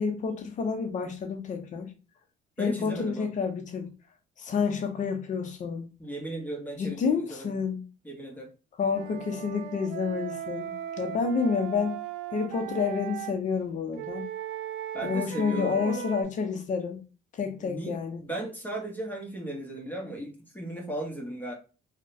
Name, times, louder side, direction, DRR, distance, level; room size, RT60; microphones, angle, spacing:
voice 1, 0.0-1.9 2.6-3.9 4.4-5.9 6.8-7.8 8.8-11.9 12.3-14.3 15.0-17.0 17.3-18.2, left 5 dB, 45° left, 0.6 m, -29 dB
voice 2, 2.6-3.3 6.0-7.5 8.0-8.5 14.9-16.0 17.6-21.5, right 1 dB, 10° left, 0.9 m, -36 dB
Wind instrument woodwind instrument, 8.9-13.4 13.9-16.2, right 10 dB, 90° right, 0.4 m, -37 dB
3.7 x 2.1 x 2.5 m
cardioid pair, 110°, 17 cm